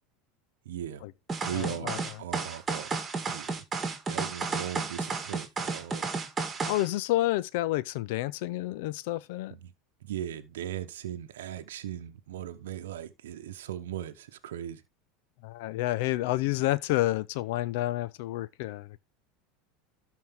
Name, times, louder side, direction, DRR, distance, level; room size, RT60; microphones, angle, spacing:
voice 1, 0.6-1.1 1.4-3.0 3.3-3.6 4.1-6.1 9.5-9.7 10.0-14.8, right 11 dB, 85° right, 0.8 m, -38 dB
sound 1, 1.3-6.9, right 4 dB, 20° right, 2.1 m, -32 dB
voice 2, 1.5-2.0 6.6-9.5 15.4-19.0, left 16 dB, 70° left, 0.7 m, -29 dB
12.5 x 4.6 x 3.5 m
hypercardioid pair, 105°, 0 cm